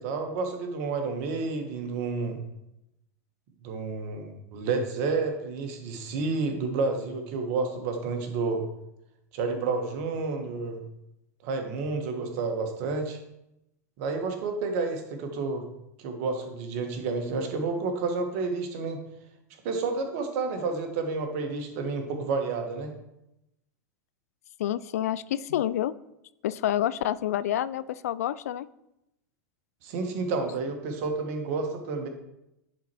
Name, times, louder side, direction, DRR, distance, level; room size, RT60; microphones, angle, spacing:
voice 1, 0.0-2.4 3.6-8.6 9.3-10.8 11.4-13.2 14.0-15.6 16.0-19.0 19.6-22.9 29.8-32.1, right 4 dB, 55° right, 5 dB, 1.5 m, -30 dB
voice 2, 24.6-25.9 26.4-28.7, left 12 dB, 65° left, 17 dB, 0.3 m, -28 dB
10.0 x 4.4 x 4.7 m, 0.86 s
figure-of-eight pair, 90°, 9 cm